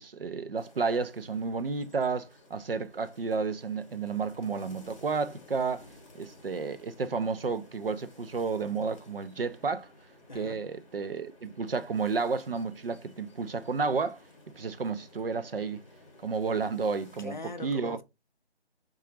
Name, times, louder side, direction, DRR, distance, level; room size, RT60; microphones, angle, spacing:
voice 1, 0.0-5.9 6.2-9.9 10.3-14.2 14.6-15.8 16.2-17.4 17.6-18.0, right 4 dB, 60° right, 0.4 m, -31 dB
sound 1, 0.6-17.3, left 2 dB, 30° left, 0.9 m, -56 dB
voice 2, 10.3-10.7 17.2-18.0, left 3 dB, 45° left, 0.4 m, -41 dB
3.7 x 2.3 x 3.0 m
figure-of-eight pair, 160°, 33 cm